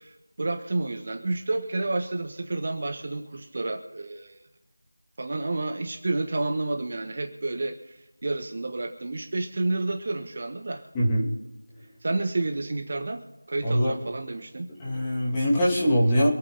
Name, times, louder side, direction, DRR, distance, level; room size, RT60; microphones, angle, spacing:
voice 1, 0.0-4.4 5.2-10.9 12.0-13.2 13.5-14.7, right 2 dB, 30° right, 5 dB, 1.4 m, -30 dB
voice 2, 10.9-11.3 13.6-13.9 14.8-16.3, equal, 10° left, -5 dB, 2.6 m, -22 dB
26.5 x 9.1 x 4.0 m, 0.98 s
figure-of-eight pair, 175°, 0 cm